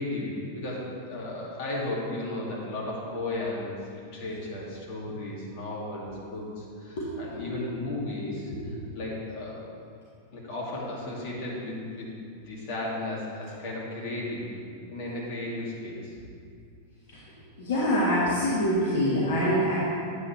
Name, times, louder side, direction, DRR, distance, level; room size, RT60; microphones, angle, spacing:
voice 1, 0.0-9.6 10.3-12.1 12.4-14.6 14.9-16.1, left 2 dB, 45° left, -5 dB, 2.2 m, -35 dB
voice 2, 8.2-8.7 17.6-19.7, equal, 60° left, -7 dB, 1.4 m, -25 dB
9.2 x 8.1 x 3.2 m, 2.4 s
figure-of-eight pair, 90°, 0 cm